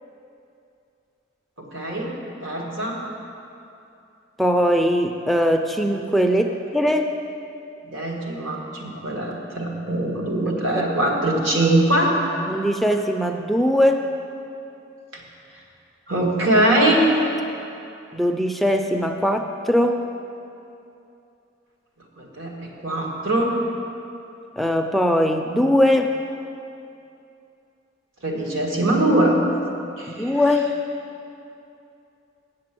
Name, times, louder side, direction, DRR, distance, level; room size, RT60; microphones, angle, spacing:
voice 1, 1.6-2.1 2.4-3.0 7.8-12.2 15.1-15.2 16.1-17.1 22.2-23.6 28.2-29.4 30.0-30.4, right 1 dB, 80° right, -1 dB, 1.8 m, -22 dB
voice 2, 4.4-7.2 12.5-14.1 18.1-20.0 24.6-26.1 30.1-30.8, equal, ahead, 4 dB, 0.3 m, -20 dB
7.8 x 7.6 x 7.5 m, 2.7 s
head